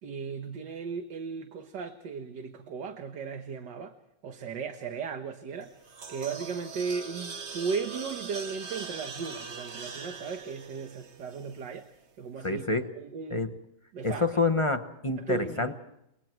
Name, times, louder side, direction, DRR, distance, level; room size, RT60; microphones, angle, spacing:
voice 1, 0.0-3.9 4.2-5.7 6.1-11.9 12.2-12.6 13.0-13.5 13.9-14.3 15.2-15.7, right 5 dB, 75° right, 6 dB, 1.9 m, -36 dB
sound 1, 5.6-11.9, right 5 dB, 45° right, 1.3 m, -42 dB
voice 2, 12.4-12.9 13.3-13.5 14.0-15.7, left 3 dB, 25° left, 7 dB, 0.8 m, -27 dB
28.0 x 23.5 x 4.6 m, 0.81 s
omnidirectional pair, 1.9 m